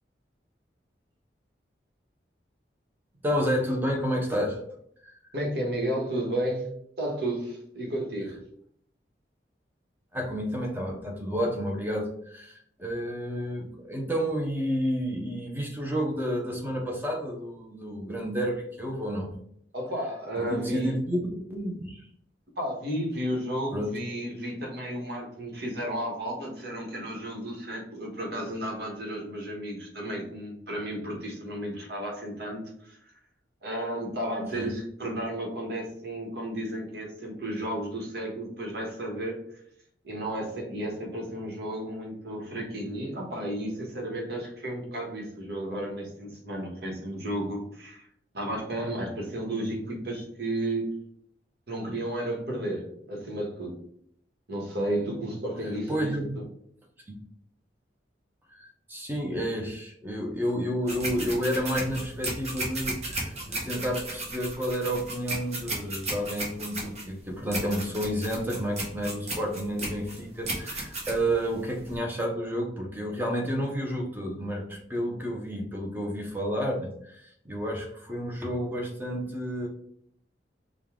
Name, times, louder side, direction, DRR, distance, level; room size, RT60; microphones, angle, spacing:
voice 1, 3.2-4.6 5.0-5.2 10.1-19.3 20.4-21.2 21.5-22.1 23.7-24.0 34.5-34.7 55.9-56.4 57.1-57.2 58.5-79.7, equal, 10° right, 1 dB, 0.7 m, -30 dB
voice 2, 5.3-6.7 7.0-8.4 19.7-20.9 22.6-33.0 33.6-39.4 40.0-48.1 48.3-51.0 51.7-53.8 54.5-56.4, right 1 dB, 60° right, -1 dB, 1.3 m, -33 dB
sound 1, 60.9-72.0, right 2 dB, 35° right, 1.1 m, -35 dB
5.2 x 2.3 x 3.6 m, 0.68 s
head